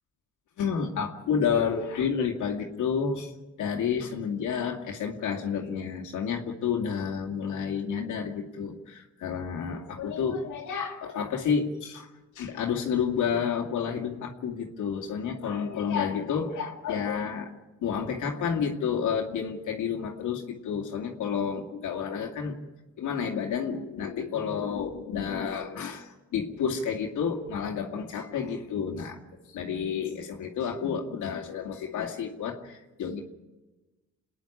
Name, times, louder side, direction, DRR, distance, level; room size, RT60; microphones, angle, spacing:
voice 1, 0.6-3.3 3.6-12.1 12.4-17.5 17.8-22.5 23.0-29.2 29.5-33.2, left 7 dB, 80° left, 1 dB, 2.3 m, -30 dB
27.5 x 10.5 x 10.0 m, 1.1 s
cardioid pair, 90°, 30 cm